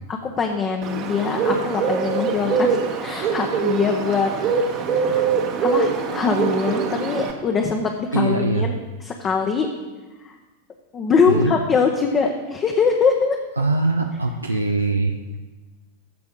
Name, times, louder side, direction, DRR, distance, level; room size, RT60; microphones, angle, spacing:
voice 1, 0.1-5.3 5.6-8.7 9.0-9.7 10.2-10.3 10.9-13.4, left 5 dB, 25° left, 2 dB, 0.9 m, -23 dB
Bird, 0.8-7.3, right 5 dB, 35° right, 1.1 m, -23 dB
voice 2, 8.1-8.7 11.3-11.6 13.6-15.4, right 3 dB, 85° right, 3 dB, 0.6 m, -22 dB
14.0 x 4.7 x 5.3 m, 1.2 s
figure-of-eight pair, 90°, 0 cm